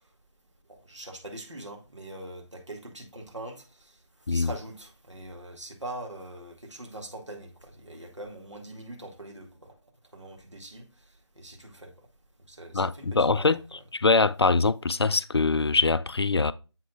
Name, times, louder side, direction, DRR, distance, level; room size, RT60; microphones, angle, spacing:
voice 1, 0.7-3.9 4.3-9.7 10.1-10.9 11.4-11.9 12.5-13.8, right 1 dB, 85° right, 2.1 m, -42 dB
voice 2, 12.7-13.6 13.9-16.5, left 3 dB, 60° left, 0.4 m, -23 dB
7.3 x 5.8 x 2.4 m
figure-of-eight pair, 165°, 15 cm